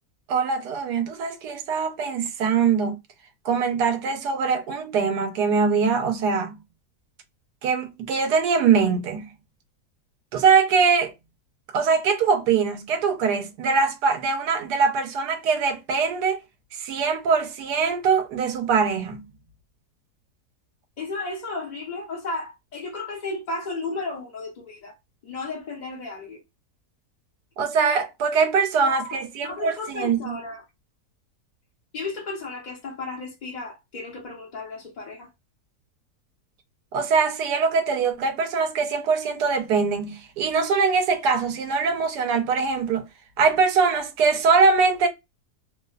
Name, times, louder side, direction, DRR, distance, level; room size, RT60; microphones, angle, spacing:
voice 1, 0.3-3.0 3.4-6.6 7.6-9.3 10.3-11.1 11.7-16.4 16.8-19.3 27.6-30.4 36.9-43.1 43.4-45.1, right 5 dB, 80° right, 1.2 m, -22 dB
voice 2, 21.0-24.9 25.2-26.4 28.9-30.6 31.9-35.3, left 3 dB, 45° left, 0.6 m, -34 dB
2.9 x 2.1 x 2.3 m
omnidirectional pair, 1.7 m